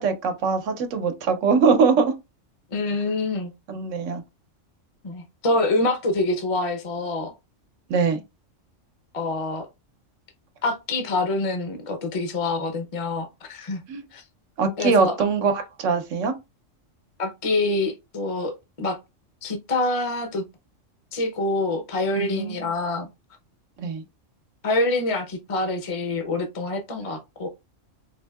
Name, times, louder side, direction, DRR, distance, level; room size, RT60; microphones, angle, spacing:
voice 1, 0.0-2.1 3.7-4.2 7.9-8.2 13.9-14.0 14.6-16.3 22.2-22.7 23.8-24.0, right 5 dB, 80° right, 1.0 m, -22 dB
voice 2, 2.7-3.5 5.0-7.3 9.1-9.7 10.6-13.8 14.1-14.2 14.8-15.2 17.2-18.5 18.8-19.0 19.4-20.4 21.1-23.1 24.6-27.5, left 2 dB, 40° left, 0.5 m, -26 dB
4.4 x 2.6 x 2.3 m
omnidirectional pair, 1.3 m